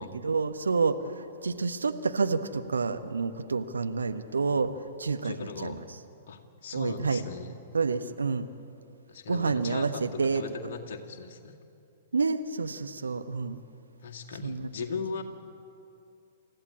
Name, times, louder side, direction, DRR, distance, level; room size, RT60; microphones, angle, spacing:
voice 1, 0.0-4.7 5.0-5.7 6.7-7.2 7.7-8.5 9.3-10.4 12.1-13.6 14.4-14.7, right 4 dB, 70° right, 9 dB, 1.1 m, -29 dB
voice 2, 5.2-5.8 6.3-7.6 9.1-11.6 14.0-15.2, left 5 dB, 50° left, 2 dB, 2.1 m, -38 dB
28.0 x 15.0 x 8.7 m, 2.6 s
figure-of-eight pair, 110°, 0 cm